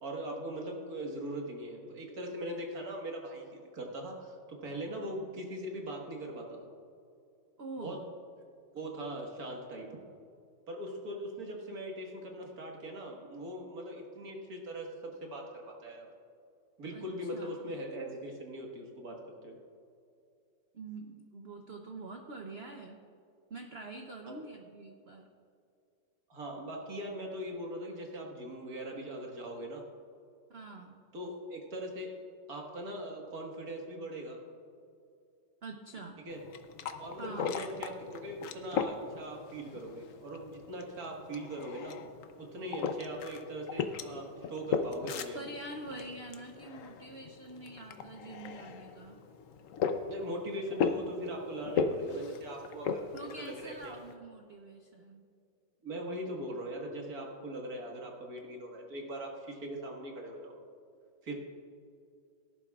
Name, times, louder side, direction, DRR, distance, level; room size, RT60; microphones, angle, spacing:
voice 1, 0.0-6.7 7.8-8.0 8.7-10.0 10.7-16.1 16.8-19.6 26.3-29.9 31.1-32.2 32.5-34.4 36.3-36.4 37.0-42.0 42.4-45.5 50.1-53.1 53.4-54.0 55.8-60.5 61.2-61.3, right 1 dB, 50° right, 0 dB, 2.0 m, -41 dB
voice 2, 7.6-8.0 16.9-17.0 17.3-17.7 20.7-23.0 23.5-25.3 30.5-30.9 35.6-36.2 37.2-37.6 45.3-49.2 53.1-55.2, right 2 dB, 70° right, 3 dB, 0.5 m, -45 dB
sound 1, 36.3-54.1, left 5 dB, 65° left, 0.8 m, -38 dB
18.0 x 11.0 x 2.4 m, 2.5 s
omnidirectional pair, 2.1 m